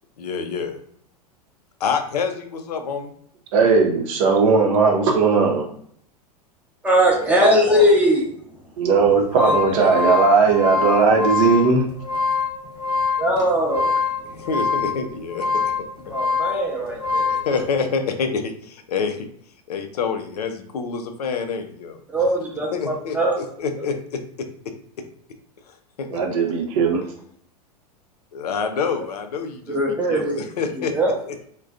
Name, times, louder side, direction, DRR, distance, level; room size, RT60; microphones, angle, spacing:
voice 1, 0.2-0.8 1.8-3.1 7.4-7.9 14.2-15.9 17.3-19.3 19.7-22.2 22.7-24.5 25.7-26.2 28.3-29.8 30.1-30.9 31.3-31.5, left 5 dB, 75° left, 7 dB, 0.4 m, -27 dB
voice 2, 3.5-5.7 8.8-11.9 26.1-27.0, right 4 dB, 55° right, 1 dB, 0.7 m, -17 dB
voice 3, 6.8-8.2 9.4-10.2 13.2-14.0 16.1-17.4 22.1-23.3 29.7-30.4 30.8-31.1, equal, 5° right, -2 dB, 0.7 m, -20 dB
sound 1, 9.1-17.5, left 5 dB, 40° left, 0.7 m, -24 dB
2.3 x 2.2 x 2.4 m, 0.63 s
figure-of-eight pair, 95°, 20 cm